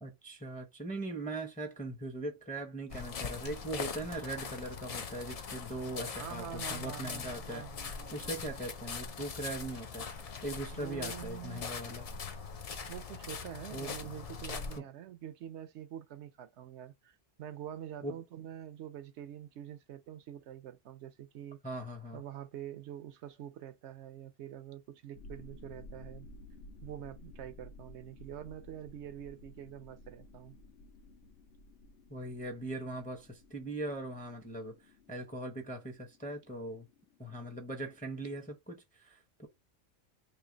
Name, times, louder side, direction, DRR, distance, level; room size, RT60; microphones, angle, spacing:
voice 1, 0.0-6.4 6.7-7.6 8.1-10.1 10.4-12.1 13.7-13.9 14.8-14.9 18.0-18.2 21.6-22.2 32.1-34.7 35.1-36.9 37.2-39.5, right 1 dB, 10° left, 0.6 m, -40 dB
sound 1, 2.9-14.8, left 5 dB, 55° left, 0.4 m, -42 dB
voice 2, 6.2-8.3 10.7-11.7 12.9-21.6 22.1-26.3 26.8-30.6, right 10 dB, 70° right, 0.8 m, -46 dB
sound 2, 25.1-38.5, left 2 dB, 75° left, 0.9 m, -55 dB
3.2 x 2.8 x 3.9 m
omnidirectional pair, 1.2 m